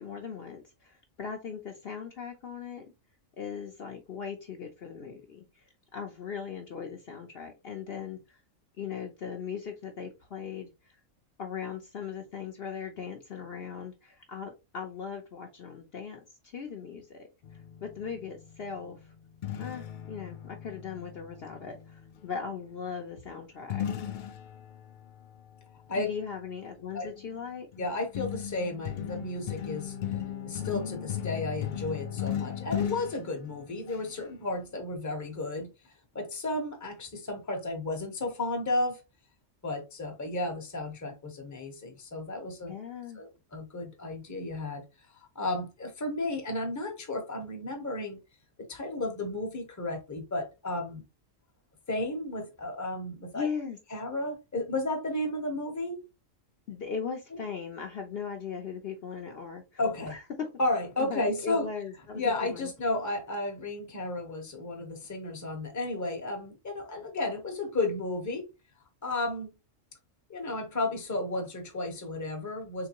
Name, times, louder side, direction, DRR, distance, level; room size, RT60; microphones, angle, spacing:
voice 1, 0.0-2.9 3.4-5.6 5.9-8.4 8.8-11.0 11.4-17.3 17.5-19.1 19.6-23.9 25.9-27.7 42.6-43.2 53.3-53.8 56.7-59.8 60.1-60.5 61.0-62.7, left 6 dB, 55° left, 0.8 m, -39 dB
sound 1, 17.4-22.2 23.7-25.9 26.9-27.2 27.7-34.2, left 10 dB, 75° left, 0.4 m, -37 dB
voice 2, 27.8-30.0 30.4-35.7 36.1-39.0 39.6-42.7 43.2-44.8 45.3-48.2 48.6-51.0 51.9-53.5 53.9-56.0 57.3-57.4 59.8-60.1 60.6-61.6 62.1-68.5 69.0-69.5 70.3-72.9, left 2 dB, 15° left, 0.8 m, -33 dB
3.8 x 3.3 x 2.8 m
omnidirectional pair, 1.4 m